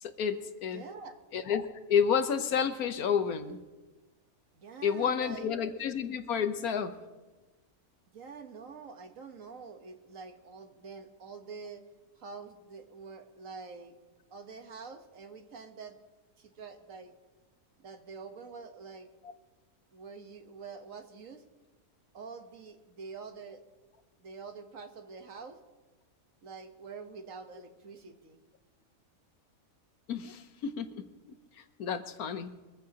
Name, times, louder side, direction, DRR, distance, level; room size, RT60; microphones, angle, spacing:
voice 1, 0.0-0.8 1.3-3.6 4.8-6.9 30.1-30.9 31.8-32.5, left 7 dB, 70° left, 10 dB, 1.3 m, -30 dB
voice 2, 0.7-1.2 4.5-5.5 8.1-11.8 12.2-13.9 14.3-16.0 16.4-17.1 17.8-19.1 19.9-21.4 22.1-23.6 24.2-25.6 26.4-28.4, right 5 dB, 60° right, 6 dB, 1.5 m, -46 dB
23.5 x 15.0 x 2.9 m, 1.2 s
omnidirectional pair, 1.6 m